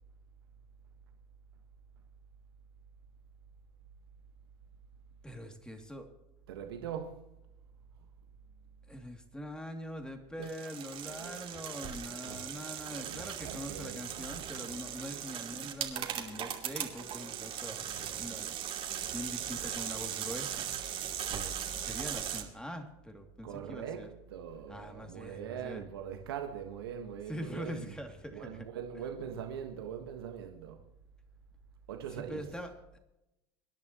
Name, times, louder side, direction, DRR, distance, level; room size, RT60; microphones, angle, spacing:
voice 1, 5.2-6.1 8.9-18.5 19.1-20.7 21.3-24.1 24.7-25.8 27.3-28.7 32.1-33.0, equal, 5° left, 2.7 m, -43 dB
voice 2, 6.5-7.2 10.4-10.5 10.9-11.9 12.2-12.4 12.9-14.6 23.4-28.0 28.3-30.8 31.9-32.6, right 8 dB, 80° right, 1.5 m, -42 dB
sound 1, 10.4-22.4, right 9 dB, 50° right, 2.6 m, -39 dB
25.0 x 10.5 x 3.0 m
hypercardioid pair, 75°, 12 cm